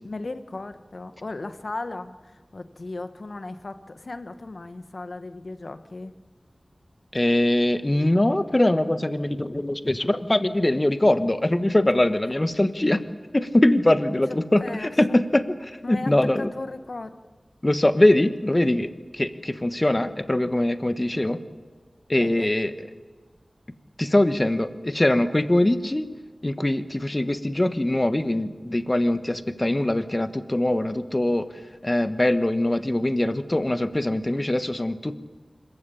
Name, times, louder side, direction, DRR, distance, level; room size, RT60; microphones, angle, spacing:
voice 1, 0.0-6.1 14.3-14.9 15.8-17.2 22.2-22.5, left 2 dB, 70° left, 9 dB, 1.4 m, -36 dB
voice 2, 7.1-13.0 13.3-16.5 17.6-21.4 22.1-22.9 24.0-26.1 26.4-31.5 31.8-35.2, left 1 dB, 30° left, 10 dB, 1.3 m, -22 dB
26.5 x 15.0 x 8.6 m, 1.4 s
wide cardioid pair, 60°, 0 cm